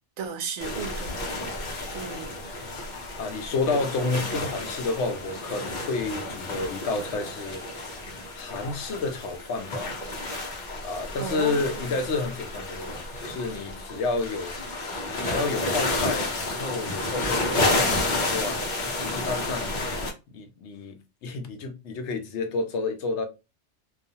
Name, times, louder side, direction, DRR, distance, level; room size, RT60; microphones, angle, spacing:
voice 1, 0.2-1.2 1.9-2.3 11.2-11.8, right 5 dB, 80° right, 0.9 m, -34 dB
sound 1, 0.6-20.1, left 2 dB, 50° left, 0.7 m, -31 dB
voice 2, 1.6-2.7 3.1-7.6 8.3-9.9 10.8-14.5 15.2-18.6 19.0-23.3, left 3 dB, 80° left, 0.9 m, -30 dB
2.4 x 2.3 x 2.7 m
omnidirectional pair, 1.2 m